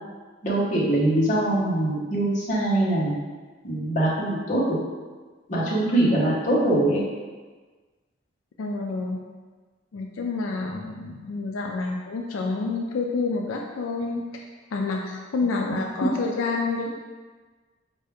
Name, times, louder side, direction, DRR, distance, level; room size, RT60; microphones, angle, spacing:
voice 1, 0.4-3.1 3.6-4.8 5.5-7.0, right 1 dB, 40° left, -7 dB, 1.1 m, -23 dB
voice 2, 8.6-9.3 9.9-14.4 14.7-16.9, left 3 dB, 85° left, 1 dB, 0.4 m, -28 dB
4.4 x 2.7 x 3.5 m, 1.4 s
head